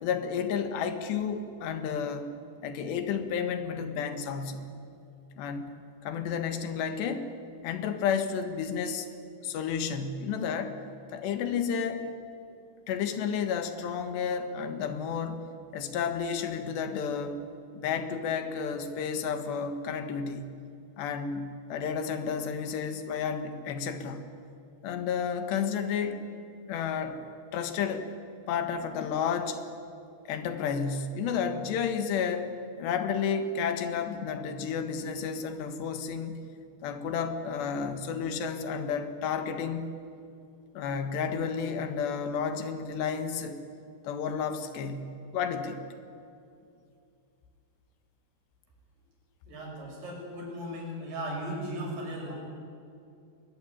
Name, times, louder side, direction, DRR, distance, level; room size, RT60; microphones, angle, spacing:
voice 1, 0.0-2.3 2.6-4.7 5.4-5.7 6.0-7.3 7.6-9.1 9.4-10.8 11.1-12.0 12.9-17.4 17.7-20.5 21.0-24.2 24.8-26.3 26.7-27.2 27.5-28.1 28.5-29.6 30.3-36.4 36.8-39.9 40.7-43.6 44.0-45.8, left 6 dB, 80° left, 8 dB, 3.7 m, -31 dB
voice 2, 49.5-52.3, equal, 70° right, -1 dB, 8.2 m, -37 dB
23.0 x 21.0 x 10.0 m, 2.5 s
omnidirectional pair, 4.9 m